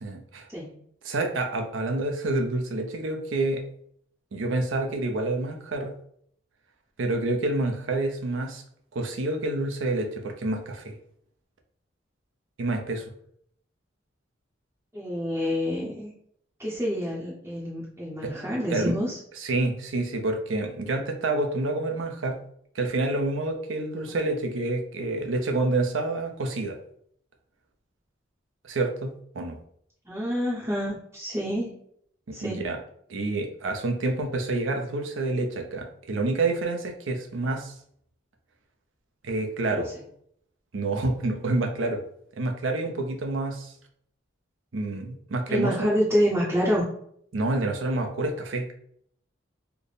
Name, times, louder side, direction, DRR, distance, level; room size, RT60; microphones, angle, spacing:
voice 1, 0.0-0.5 1.0-3.6 4.3-5.9 7.0-8.6 8.9-10.9 12.6-13.0 18.2-18.3 18.7-19.0 19.4-22.4 22.7-26.8 28.7-29.6 32.3-32.8 33.1-37.7 39.2-39.9 40.7-42.0 42.4-43.7 44.7-45.9 47.3-48.8, right 2 dB, 90° right, 3 dB, 0.6 m, -28 dB
voice 2, 14.9-16.1 16.6-19.1 24.1-24.2 30.1-31.8 32.3-32.7 39.7-39.8 45.5-46.9, equal, 15° right, -7 dB, 0.7 m, -27 dB
3.4 x 2.1 x 3.9 m, 0.67 s
head